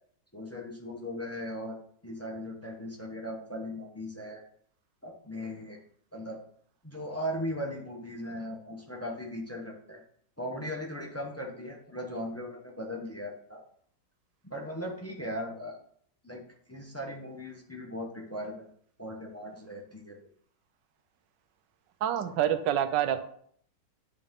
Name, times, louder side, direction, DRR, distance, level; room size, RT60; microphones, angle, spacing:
voice 1, 0.3-1.8 2.0-4.4 5.0-5.8 6.1-6.4 6.8-10.0 10.4-13.6 14.5-15.8 16.2-16.4 16.7-18.7 19.0-20.2, equal, 15° left, 0 dB, 0.5 m, -38 dB
voice 2, 22.0-23.2, right 10 dB, 80° right, 10 dB, 1.3 m, -27 dB
11.0 x 3.8 x 3.6 m, 0.63 s
omnidirectional pair, 2.0 m